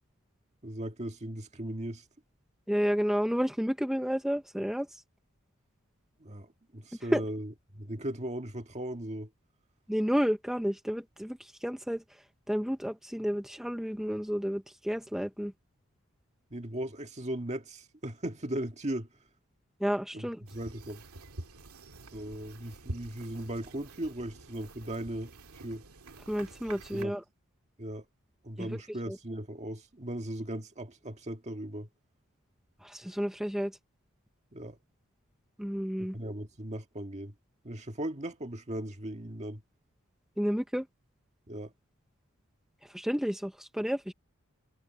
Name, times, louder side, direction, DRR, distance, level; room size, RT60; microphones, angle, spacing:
voice 1, 0.6-2.0 6.2-9.3 16.5-19.1 20.1-21.0 22.1-25.8 26.9-27.1 27.8-28.1 28.4-31.9 34.5-34.8 36.0-37.3 37.6-39.6 41.5-41.7, right 1 dB, 30° right, 1.8 m, -38 dB
voice 2, 2.7-5.0 7.1-7.2 9.9-15.5 19.8-20.4 26.3-27.2 28.6-28.8 29.1-29.2 32.8-33.8 35.6-36.2 40.4-40.9 42.8-44.1, equal, ahead, 0.7 m, -31 dB
sound 1, 20.5-27.0, right 2 dB, 85° right, 2.1 m, -47 dB
head